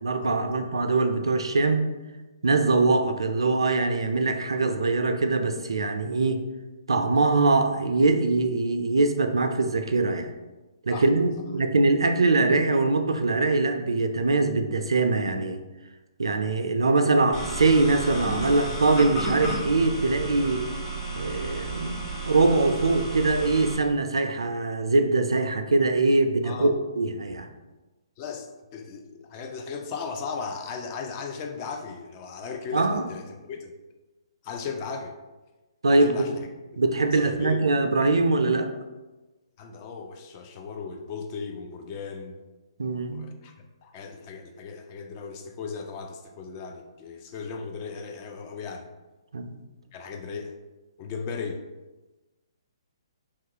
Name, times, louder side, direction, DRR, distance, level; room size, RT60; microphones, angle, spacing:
voice 1, 0.0-1.8 2.4-6.5 6.9-10.3 10.8-15.6 16.2-20.7 21.2-27.5 32.7-33.0 35.8-36.1 36.8-38.7 42.8-43.3 49.3-49.6, right 3 dB, 80° right, 7 dB, 0.3 m, -23 dB
sound 1, 17.3-23.8, right 2 dB, 15° left, 0.9 m, -32 dB
voice 2, 26.4-26.7 28.2-33.8 34.4-35.2 35.9-36.4 37.1-37.6 39.6-42.4 43.1-43.5 43.8-48.9 49.9-50.5 51.0-51.6, left 5 dB, 35° left, 4 dB, 0.4 m, -36 dB
2.9 x 2.4 x 2.8 m, 1.1 s
figure-of-eight pair, 135°, 3 cm